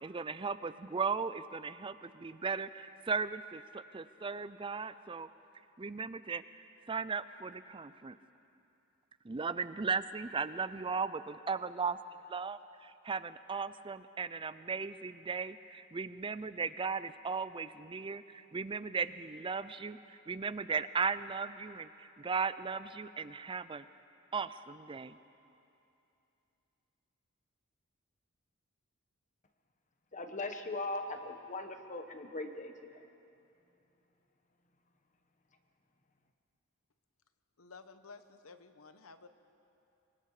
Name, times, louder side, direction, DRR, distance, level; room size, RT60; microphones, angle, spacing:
voice 1, 0.0-5.3 5.8-6.4 6.9-8.2 9.2-12.0 12.3-20.0 20.3-23.8 24.3-25.2, right 5 dB, 25° right, 14 dB, 0.5 m, -37 dB
voice 2, 30.1-33.0, left 2 dB, 35° left, 6 dB, 1.3 m, -40 dB
voice 3, 37.6-39.3, left 4 dB, 70° left, 10 dB, 1.1 m, -53 dB
25.5 x 24.0 x 4.9 m, 2.8 s
head